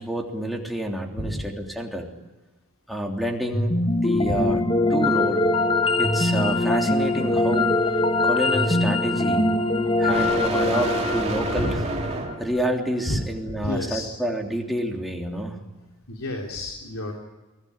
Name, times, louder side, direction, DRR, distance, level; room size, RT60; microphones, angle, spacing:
voice 1, 0.0-2.1 2.9-4.6 4.9-5.4 6.0-9.5 10.0-11.8 12.4-15.6, equal, ahead, 0 dB, 3.2 m, -29 dB
sound 1, 3.5-12.7, left 2 dB, 25° left, 1.3 m, -22 dB
sound 2, 5.1-12.4, right 2 dB, 30° right, 2.7 m, -31 dB
voice 2, 13.6-14.1 16.1-17.1, left 1 dB, 75° left, 0 dB, 3.7 m, -29 dB
23.5 x 18.0 x 10.0 m, 1.1 s
head